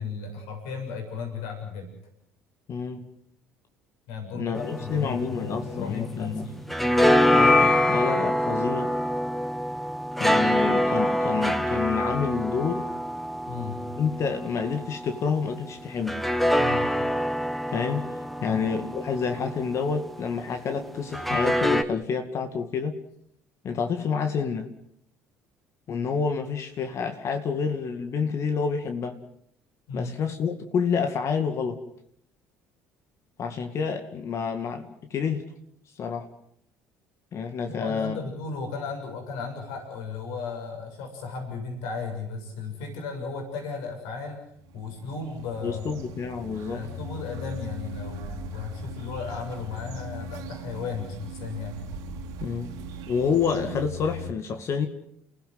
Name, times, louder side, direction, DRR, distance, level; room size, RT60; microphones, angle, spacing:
voice 1, 0.0-1.9 4.1-6.7 13.5-13.8 16.6-16.9 18.4-18.6 29.9-30.1 37.6-44.4 44.7-46.0 46.7-51.8, left 4 dB, 75° left, 3 dB, 7.0 m, -35 dB
voice 2, 2.7-3.1 4.3-6.5 7.3-8.9 10.2-12.8 14.0-16.2 17.7-18.0 18.4-23.0 23.6-24.7 25.9-29.2 29.9-31.8 33.4-35.4 36.0-36.2 37.3-38.2 45.6-46.9 52.4-52.7 53.1-54.9, left 6 dB, 50° left, 7 dB, 2.2 m, -28 dB
sound 1, 4.6-6.2 6.5-15.2 16.1-20.1 21.1-21.8, left 1 dB, ahead, 1.9 m, -25 dB
sound 2, 44.6-54.3, equal, 70° right, 2.7 m, -39 dB
29.5 x 16.5 x 7.9 m, 0.73 s
hypercardioid pair, 60°, 6 cm